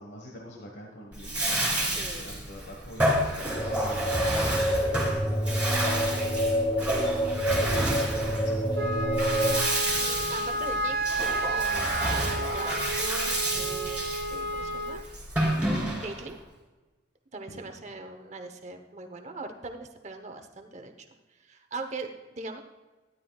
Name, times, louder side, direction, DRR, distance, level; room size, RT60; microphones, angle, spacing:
voice 1, 0.0-5.0 5.3-5.5 5.8-7.1 7.5-7.9 8.2-8.9 17.5-17.6, left 1 dB, 65° left, 0 dB, 1.4 m, -45 dB
Bathtub (filling or washing), 1.1-16.3, right 1 dB, 5° right, 3.1 m, -30 dB
voice 2, 1.9-2.4 4.6-5.1 7.5-8.4 9.7-15.0 16.0-16.4 17.3-22.6, right 3 dB, 35° right, 6 dB, 0.9 m, -41 dB
sound 1, 3.5-9.6, equal, 15° left, 0.9 m, -27 dB
Wind instrument woodwind instrument, 8.7-15.0, right 2 dB, 80° right, 1.0 m, -31 dB
13.0 x 11.5 x 2.3 m, 1.2 s
head